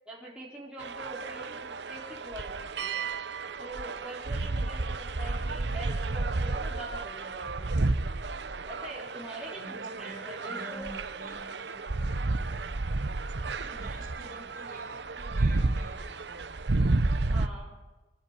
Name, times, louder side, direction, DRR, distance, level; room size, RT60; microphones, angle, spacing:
voice 1, 0.1-3.0 3.6-7.7 8.6-10.8 17.3-17.8, right 1 dB, 5° right, -5 dB, 4.3 m, -44 dB
sound 1, 0.8-17.5, right 2 dB, 75° right, 0.9 m, -31 dB
voice 2, 5.0-5.5 9.5-11.8 12.4-13.0 13.6-16.8, right 1 dB, 50° right, 0 dB, 4.6 m, -48 dB
25.0 x 12.5 x 9.0 m, 1.2 s
head